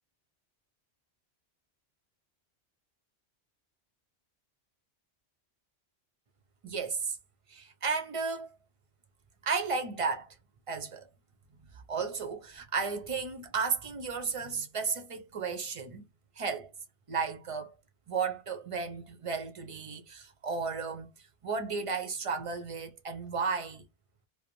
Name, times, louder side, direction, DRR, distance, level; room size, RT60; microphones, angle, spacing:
voice 1, 6.6-7.2 7.5-8.5 9.4-10.3 10.7-11.1 11.7-16.1 16.4-16.7 17.1-17.8 18.1-21.1 21.4-23.9, right 5 dB, 40° right, 0.5 m, -34 dB
2.5 x 2.1 x 2.9 m
omnidirectional pair, 1.1 m